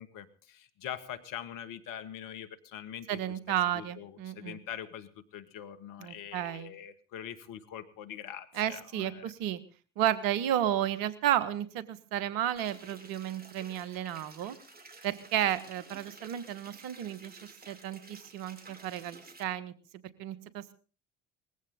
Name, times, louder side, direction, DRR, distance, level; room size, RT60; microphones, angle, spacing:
voice 1, 0.0-3.2 3.7-9.3, left 9 dB, 65° left, 11 dB, 1.9 m, -43 dB
voice 2, 3.1-4.6 6.0-6.7 8.5-9.6 10.0-14.6 15.0-17.4 17.7-19.7 20.2-20.7, right 11 dB, 70° right, 14 dB, 1.7 m, -32 dB
sound 1, 12.6-19.4, right 3 dB, 25° right, 4.5 m, -53 dB
20.0 x 15.5 x 3.8 m, 0.39 s
hypercardioid pair, 60°, 35 cm